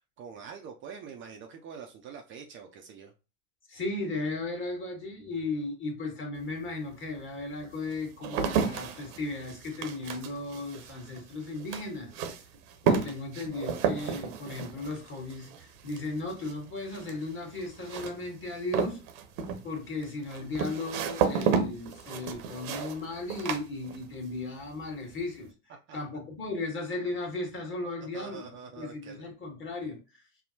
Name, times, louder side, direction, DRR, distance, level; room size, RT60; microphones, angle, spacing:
voice 1, 0.0-3.1 25.9-26.0 28.1-29.2, right 6 dB, 30° right, 0.4 m, -45 dB
voice 2, 3.7-12.1 12.8-19.0 19.6-25.5 25.9-28.4 28.8-30.2, left 2 dB, 30° left, 1.4 m, -36 dB
sound 1, 6.4-6.5 7.2-24.4 24.6-25.2, right 6 dB, 55° right, 0.8 m, -32 dB
5.6 x 2.0 x 2.6 m
hypercardioid pair, 85°, 43 cm